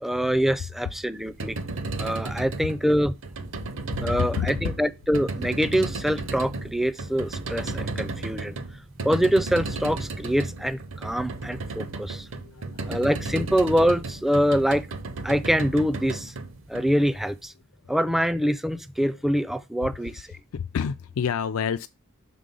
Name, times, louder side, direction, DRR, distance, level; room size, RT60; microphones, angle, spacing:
voice 1, 0.0-1.6 2.0-3.1 4.0-8.6 9.0-12.3 12.9-14.9 15.2-16.3 16.7-17.5 17.9-20.3, equal, ahead, 0.3 m, -24 dB
sound 1, 1.2-17.3, right 3 dB, 60° right, 0.7 m, -34 dB
voice 2, 4.0-4.5 12.3-13.0 13.3-13.4 20.0-20.1 20.5-21.9, left 7 dB, 70° left, 0.4 m, -29 dB
6.3 x 3.8 x 5.3 m
head